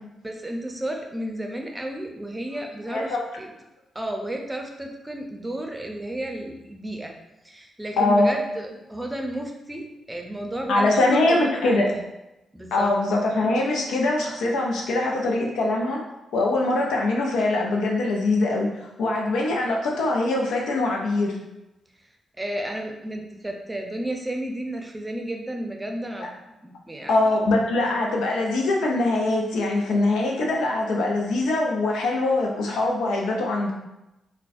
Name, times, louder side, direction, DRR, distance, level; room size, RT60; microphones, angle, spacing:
voice 1, 0.2-3.5 3.9-7.1 7.4-12.0 12.5-12.9 22.4-26.3 26.6-27.3, right 1 dB, 15° right, 2 dB, 0.6 m, -32 dB
voice 2, 2.9-3.2 8.0-8.3 10.7-11.9 12.7-16.0 16.3-21.4 26.2-26.3 27.1-33.7, left 2 dB, 75° left, 0 dB, 0.5 m, -23 dB
3.7 x 2.2 x 2.6 m, 0.94 s
hypercardioid pair, 40°, 0 cm